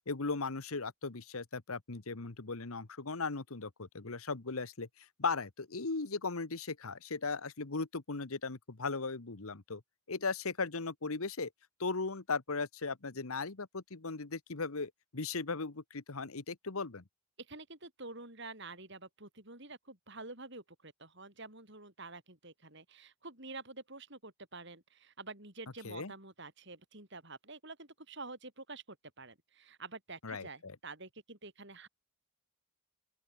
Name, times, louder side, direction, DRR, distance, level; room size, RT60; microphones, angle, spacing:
voice 1, 0.1-9.8 10.1-11.5 11.8-17.0 25.8-26.1 30.2-30.8, left 4 dB, 80° left, 1.3 m, -37 dB
voice 2, 17.4-31.9, right 3 dB, 55° right, 6.9 m, -48 dB
open air
head